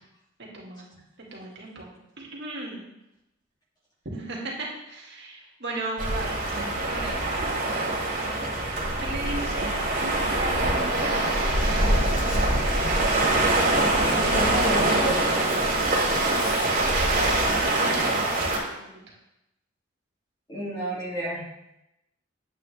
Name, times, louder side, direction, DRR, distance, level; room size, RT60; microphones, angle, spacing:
voice 1, 0.4-0.9 1.3-2.8 4.1-6.4 6.9-7.4 9.0-10.9 11.2-12.4 15.6-16.2 16.5-19.0, right 2 dB, 60° right, -2 dB, 2.1 m, -37 dB
sound 1, 6.0-18.6, right 2 dB, 45° right, 2.0 m, -24 dB
Writing, 11.7-16.7, left 1 dB, 70° left, 1.4 m, -39 dB
voice 2, 14.2-15.5 20.5-21.4, right 1 dB, 20° left, -4 dB, 2.2 m, -31 dB
9.3 x 8.2 x 3.2 m, 0.88 s
head